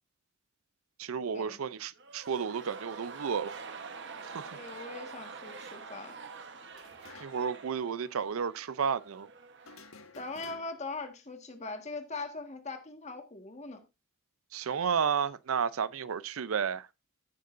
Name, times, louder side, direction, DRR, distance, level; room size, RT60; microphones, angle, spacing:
voice 1, 1.0-3.5 4.3-4.5 7.2-9.3 14.5-16.9, right 6 dB, 90° right, 0.5 m, -32 dB
sound 1, 1.9-10.0 10.3-10.4, right 5 dB, 60° right, 1.1 m, -46 dB
voice 2, 4.5-6.2 10.1-13.8, left 3 dB, 35° left, 1.5 m, -41 dB
sound 2, 6.7-7.6 7.9-8.0 9.6-11.0, left 4 dB, 90° left, 1.2 m, -53 dB
16.0 x 6.6 x 2.5 m
head